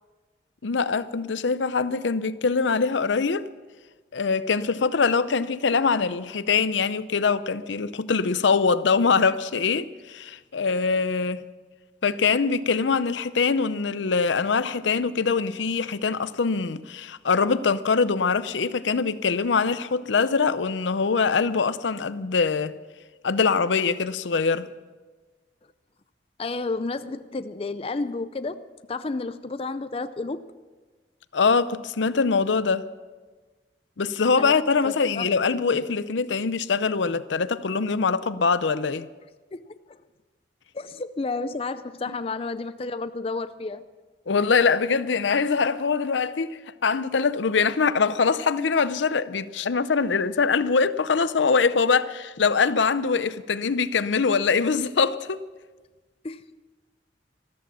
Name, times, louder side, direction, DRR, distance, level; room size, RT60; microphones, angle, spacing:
voice 1, 0.6-3.4 4.1-11.5 12.0-22.7 23.2-24.7 31.3-32.9 34.0-39.1 44.3-55.4, left 5 dB, 80° left, 0.6 m, -23 dB
voice 2, 26.4-30.4 34.4-34.5 34.8-35.4 39.5-40.0 40.7-43.8 56.2-56.4, left 3 dB, 30° left, 0.4 m, -31 dB
14.0 x 13.5 x 7.0 m
head